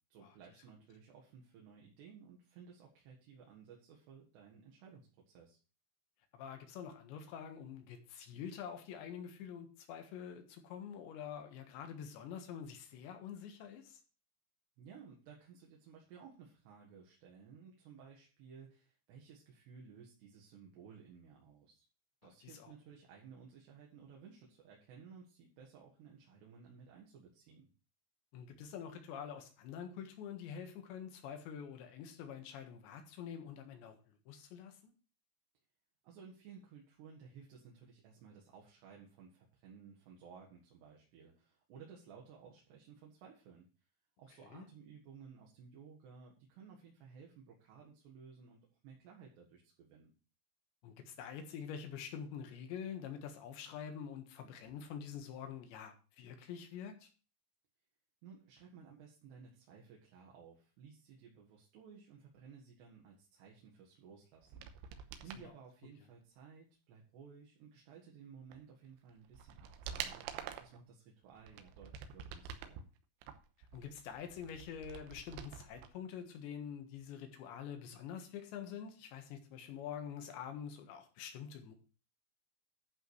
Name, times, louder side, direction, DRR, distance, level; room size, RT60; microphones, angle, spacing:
voice 1, 0.1-5.6 14.8-21.8 22.2-27.7 36.0-43.7 44.2-50.1 58.2-72.8, right 6 dB, 65° right, -1 dB, 3.6 m, -57 dB
voice 2, 6.3-14.0 22.4-22.7 28.3-34.9 44.4-44.7 50.8-57.1 65.3-65.5 73.6-81.8, left 8 dB, 70° left, 6 dB, 3.6 m, -46 dB
sound 1, 64.4-65.5 68.5-68.6 69.1-70.8 71.3-72.8 73.2-75.9 76.2-76.3, right 9 dB, 85° right, 3.3 m, -47 dB
11.5 x 5.1 x 6.3 m, 0.36 s
omnidirectional pair, 5.6 m